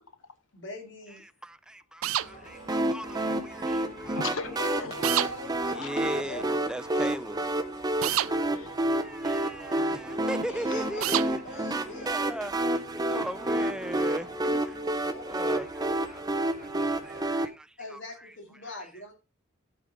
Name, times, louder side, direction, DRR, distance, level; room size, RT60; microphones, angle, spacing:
voice 1, 0.5-1.3 4.4-6.6 10.4-12.1 15.1-15.4 17.8-19.1, left 1 dB, 60° left, 2.7 m, -42 dB
voice 2, 1.1-4.2 5.7-7.4 8.8-11.4 11.9-16.7 17.0-18.3 18.6-18.8, right 1 dB, 5° right, 0.4 m, -39 dB
sound 1, 2.0-2.3 5.0-5.3 8.0-8.3 11.0-11.3, right 12 dB, 75° right, 0.4 m, -26 dB
sound 2, 2.2-17.3, equal, 40° left, 3.5 m, -47 dB
sound 3, 2.7-17.5, right 1 dB, 20° right, 0.8 m, -30 dB
voice 3, 4.2-5.1 5.7-6.1 7.9-8.8 10.7-11.3 12.0-12.1 13.1-13.3, left 4 dB, 75° left, 1.2 m, -39 dB
9.8 x 5.1 x 4.9 m
head